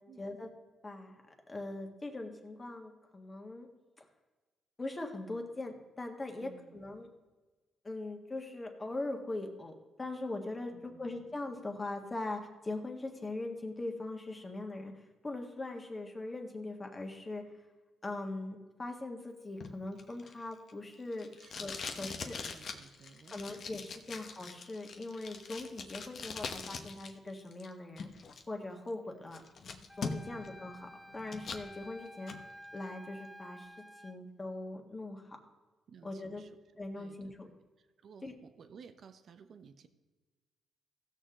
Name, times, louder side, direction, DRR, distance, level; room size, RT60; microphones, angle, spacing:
voice 1, 0.2-0.5 0.8-1.2 1.5-3.7 4.0-4.1 4.8-7.1 7.8-17.4 18.0-21.3 21.6-22.4 23.3-28.1 28.5-29.4 30.0-32.3 32.7-33.7 34.0-35.4 36.0-36.4 36.8-37.5 38.2-38.3, left 2 dB, 25° left, 3 dB, 1.7 m, -41 dB
voice 2, 6.4-6.9 10.7-11.4 21.4-21.7 22.0-23.8 24.1-24.2 30.2-30.6 35.9-36.5 37.0-39.9, right 6 dB, 60° right, 10 dB, 0.9 m, -56 dB
Packing tape duct tape, 19.6-27.1 27.4-28.4 28.9-29.0 29.3-30.5 30.8-31.6 32.1-32.4, left 5 dB, 55° left, 1.0 m, -42 dB
Wind instrument woodwind instrument, 29.9-34.2, equal, ahead, 0.5 m, -52 dB
16.0 x 6.6 x 3.8 m, 1.2 s
cardioid pair, 90°, 0 cm